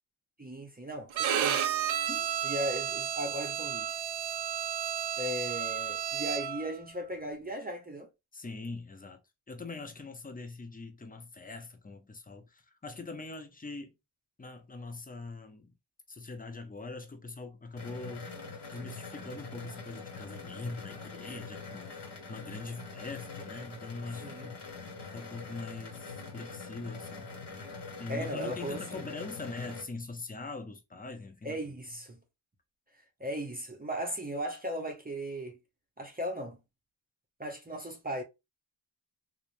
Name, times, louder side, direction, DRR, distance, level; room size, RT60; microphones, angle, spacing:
voice 1, 0.4-1.6 2.4-4.0 5.2-8.1 24.2-24.5 28.1-29.1 31.4-32.2 32.9-35.6 36.0-36.6 37.4-38.2, equal, 20° right, 0.7 m, -37 dB
Bowed string instrument, 1.1-6.7, right 9 dB, 70° right, 0.5 m, -32 dB
voice 2, 8.3-9.2 9.5-14.0 14.4-15.7 16.1-18.3 18.7-24.6 25.1-27.3 28.0-31.6, left 3 dB, 20° left, 0.6 m, -42 dB
sound 1, 17.8-29.8, left 4 dB, 55° left, 1.4 m, -44 dB
3.0 x 2.1 x 2.5 m
cardioid pair, 70°, 48 cm